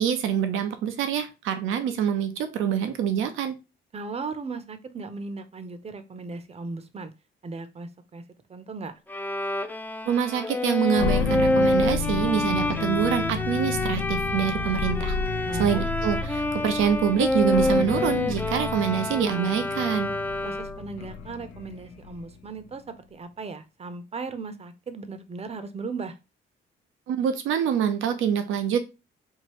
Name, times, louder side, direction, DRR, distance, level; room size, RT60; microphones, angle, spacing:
voice 1, 0.0-3.6 10.1-15.1 15.6-20.1 27.1-28.8, right 8 dB, 85° right, 0.7 m, -25 dB
voice 2, 3.9-7.1 7.4-8.2 8.5-8.9 15.5-15.9 20.4-26.2, right 4 dB, 30° right, 0.7 m, -37 dB
Bowed string instrument, 9.1-20.9, left 1 dB, 10° left, 0.4 m, -27 dB
sound 1, 10.9-22.3, left 4 dB, 85° left, 0.8 m, -32 dB
4.7 x 2.6 x 3.0 m
cardioid pair, 90°, 20 cm